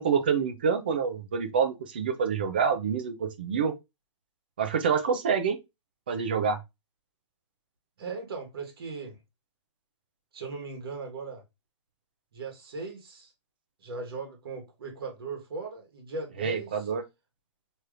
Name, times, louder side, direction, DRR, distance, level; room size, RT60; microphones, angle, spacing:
voice 1, 0.0-3.7 4.6-5.6 6.1-6.6 16.4-17.0, right 6 dB, 20° right, 0.3 m, -27 dB
voice 2, 8.0-9.2 10.3-11.4 12.3-13.3 13.8-16.9, right 4 dB, 50° right, 1.3 m, -38 dB
4.6 x 3.0 x 2.4 m
hypercardioid pair, 175°, 16 cm